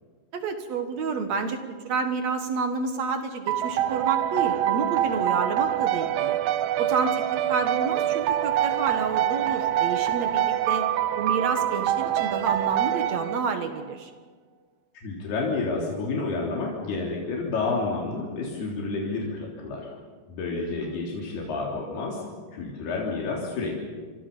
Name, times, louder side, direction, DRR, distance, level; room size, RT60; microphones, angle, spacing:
voice 1, 0.3-6.4 6.8-7.2 7.5-10.9 11.2-14.1 20.7-20.9, right 5 dB, 55° right, 7 dB, 2.3 m, -29 dB
sound 1, 3.5-13.9, right 12 dB, 75° right, 2.5 m, -25 dB
voice 2, 15.0-19.8 20.3-22.2 22.5-23.8, left 3 dB, 85° left, -2 dB, 5.4 m, -30 dB
29.0 x 25.5 x 5.5 m, 1.5 s
omnidirectional pair, 4.4 m